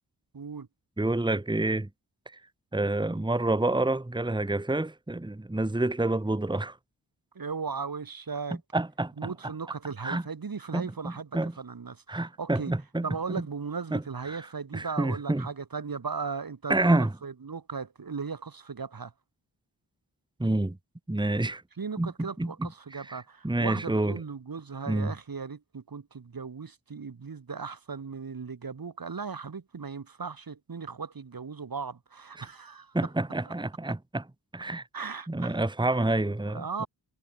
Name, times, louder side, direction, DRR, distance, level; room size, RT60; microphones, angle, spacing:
voice 1, 0.3-0.7 7.4-8.6 9.2-12.0 12.4-12.7 13.0-19.1 21.8-33.0 33.5-33.6 34.9-36.0 36.5-36.9, right 5 dB, 55° right, 1.7 m, -37 dB
voice 2, 1.0-1.9 2.7-6.8 8.7-9.3 10.0-10.2 10.7-11.5 12.1-13.4 13.9-14.4 14.7-15.5 16.7-17.1 20.4-20.8 21.1-21.6 22.0-22.7 23.1-24.2 24.9-25.1 32.4-32.5 32.9-34.3 34.5-34.8 35.3-36.9, right 2 dB, 10° right, 1.3 m, -28 dB
wide cardioid pair, 65°, 42 cm